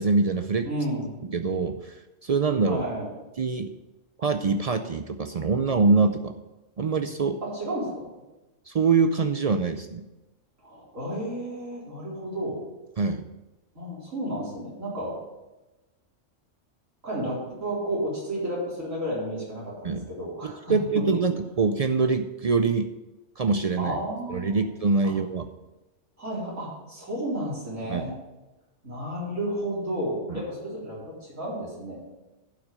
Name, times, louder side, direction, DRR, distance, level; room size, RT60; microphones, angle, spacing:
voice 1, 0.0-0.7 1.3-2.0 2.2-2.8 3.4-3.7 4.2-6.3 6.8-7.4 8.7-10.1 13.0-13.2 19.8-20.0 20.4-22.9 23.4-24.0 24.3-25.5 27.9-28.1 30.3-30.4, right 4 dB, 60° right, 7 dB, 0.3 m, -24 dB
voice 2, 0.6-1.2 2.6-3.1 7.4-8.1 10.6-12.6 13.7-15.2 17.0-20.7 23.8-24.7 25.0-25.1 26.2-28.1 28.8-32.0, right 1 dB, 90° right, -7 dB, 4.5 m, -32 dB
11.5 x 5.9 x 5.6 m, 1.0 s
omnidirectional pair, 1.3 m